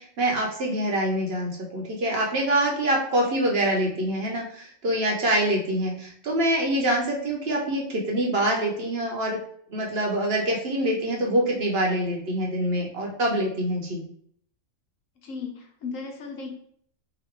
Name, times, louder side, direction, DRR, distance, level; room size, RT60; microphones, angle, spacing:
voice 1, 0.0-9.4 9.7-14.0, right 1 dB, 55° right, -1 dB, 1.0 m, -25 dB
voice 2, 15.2-16.5, left 4 dB, 75° left, 2 dB, 1.2 m, -35 dB
3.0 x 2.9 x 4.5 m, 0.62 s
omnidirectional pair, 1.3 m